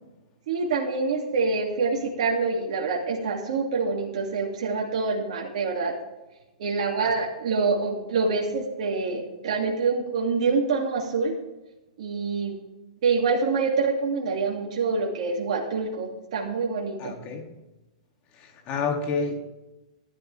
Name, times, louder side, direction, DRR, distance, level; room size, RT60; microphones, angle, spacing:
voice 1, 0.5-6.0 6.6-11.4 12.0-12.6 13.0-17.1, right 4 dB, 65° right, -2 dB, 2.6 m, -26 dB
voice 2, 17.0-17.4 18.4-19.4, left 4 dB, 35° left, 3 dB, 2.6 m, -29 dB
14.5 x 12.0 x 3.5 m, 1.0 s
hypercardioid pair, 125°, 4 cm